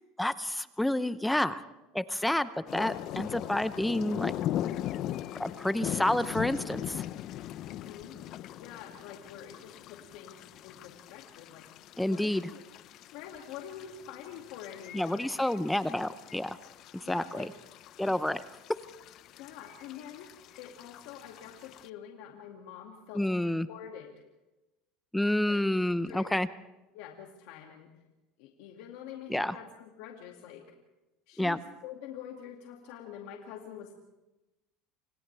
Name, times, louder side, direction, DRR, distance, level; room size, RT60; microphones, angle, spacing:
voice 1, 0.2-1.6 1.9-4.3 5.4-7.0 12.0-12.5 14.9-16.6 16.9-17.5 18.0-18.4 23.1-23.7 25.1-26.5 29.3-29.6 31.4-31.6, left 1 dB, 5° left, 13 dB, 0.7 m, -29 dB
sound 1, 2.7-21.9, left 12 dB, 50° left, 0.7 m, -40 dB
voice 2, 7.7-8.2 8.6-11.7 12.0-12.6 13.1-15.3 16.0-16.1 17.0-17.5 18.0-18.2 19.4-20.3 20.6-24.2 25.5-25.7 26.1-26.3 26.9-27.9 28.4-30.7 31.3-33.9, left 9 dB, 75° left, 1 dB, 2.4 m, -46 dB
29.5 x 27.0 x 3.5 m, 1.0 s
supercardioid pair, 130°, 0 cm